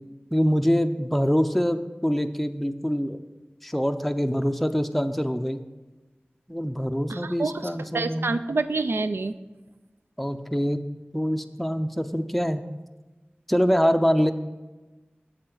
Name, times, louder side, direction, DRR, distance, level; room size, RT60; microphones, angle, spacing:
voice 1, 0.3-3.2 3.6-5.6 6.5-8.4 10.2-10.8 11.1-12.6 13.5-14.3, equal, 5° left, 8 dB, 0.5 m, -24 dB
voice 2, 7.1-9.4, right 3 dB, 90° right, 11 dB, 0.4 m, -27 dB
8.7 x 7.3 x 3.9 m, 1.1 s
wide cardioid pair, 60°, 4 cm